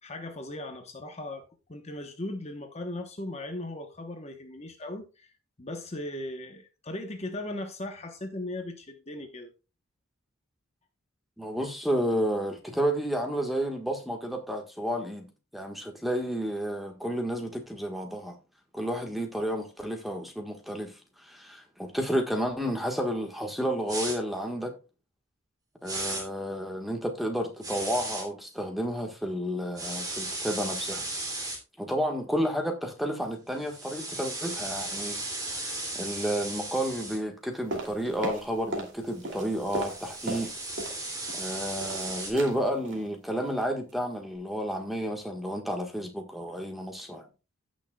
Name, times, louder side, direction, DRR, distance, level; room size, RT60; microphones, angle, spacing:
voice 1, 0.0-1.4 1.7-5.3 5.6-9.5, left 1 dB, 30° left, 1.0 m, -38 dB
voice 2, 11.4-15.3 15.5-18.4 18.7-24.7 25.8-31.1 31.8-35.2 35.5-40.5 41.3-47.3, equal, ahead, 1.4 m, -31 dB
sound 1, 23.9-24.2 25.9-26.2 27.6-28.2 29.8-31.6 33.6-37.2 39.3-42.3, right 2 dB, 15° right, 2.6 m, -35 dB
sound 2, 37.7-39.0 39.2-41.0 41.3-42.1 42.3-42.6 42.9-43.1 43.4-43.6 43.9-44.0, right 1 dB, 55° right, 2.6 m, -36 dB
16.0 x 6.3 x 2.3 m
head